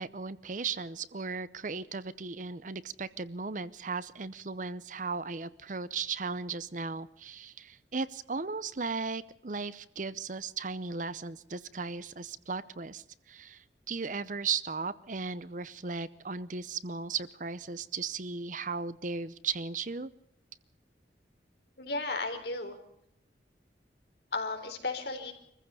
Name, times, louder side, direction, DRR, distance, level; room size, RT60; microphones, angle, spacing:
voice 1, 0.0-20.1, right 4 dB, 45° right, 16 dB, 0.7 m, -36 dB
voice 2, 21.8-22.8 24.3-25.3, left 3 dB, 60° left, 5 dB, 3.9 m, -34 dB
25.0 x 15.0 x 6.9 m, 0.73 s
head